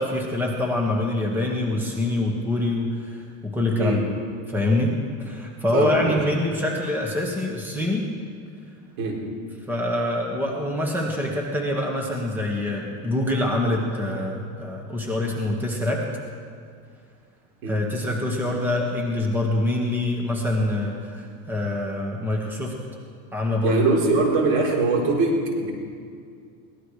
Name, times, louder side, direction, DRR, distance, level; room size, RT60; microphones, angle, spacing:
voice 1, 0.0-4.0 4.5-8.1 9.7-16.0 17.7-22.8 23.3-23.8, left 1 dB, 5° right, -1 dB, 1.6 m, -25 dB
voice 2, 5.7-6.2 9.0-9.3 17.6-17.8 23.6-25.7, right 3 dB, 70° right, -2 dB, 4.1 m, -22 dB
23.0 x 17.5 x 3.3 m, 2.3 s
cardioid pair, 155°, 42 cm